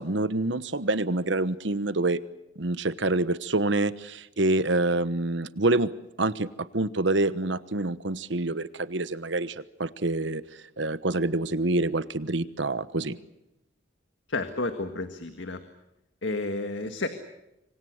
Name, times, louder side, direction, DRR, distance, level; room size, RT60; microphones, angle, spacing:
voice 1, 0.0-2.2 2.6-5.9 6.2-13.2, right 2 dB, 65° right, 14 dB, 1.2 m, -27 dB
voice 2, 14.3-15.6 16.2-17.1, left 2 dB, 70° left, 8 dB, 1.9 m, -31 dB
26.5 x 25.0 x 6.5 m, 0.90 s
head